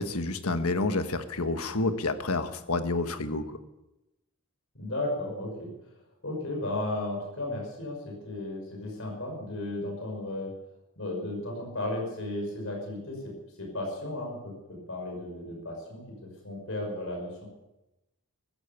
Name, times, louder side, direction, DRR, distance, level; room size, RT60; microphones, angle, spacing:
voice 1, 0.0-3.6, left 2 dB, 85° left, 9 dB, 1.4 m, -29 dB
voice 2, 4.7-5.7 6.2-10.5 11.0-13.3 13.6-17.5, left 1 dB, 65° left, 1 dB, 5.7 m, -34 dB
14.5 x 14.0 x 7.1 m, 0.94 s
head